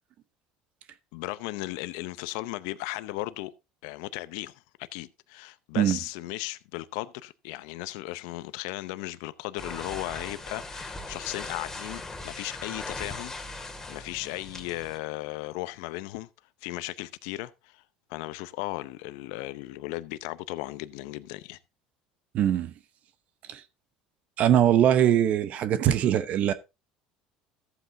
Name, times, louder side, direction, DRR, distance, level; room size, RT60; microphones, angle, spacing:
voice 1, 1.1-3.5 3.8-16.3 16.6-17.8 18.1-21.6, left 18 dB, 80° left, 0.7 m, -36 dB
sound 1, 9.6-15.0, left 2 dB, 15° left, 2.0 m, -39 dB
voice 2, 22.3-22.7 23.5-23.6 24.4-26.5, right 10 dB, 55° right, 0.8 m, -22 dB
14.0 x 8.1 x 2.7 m
supercardioid pair, 95°, 3 cm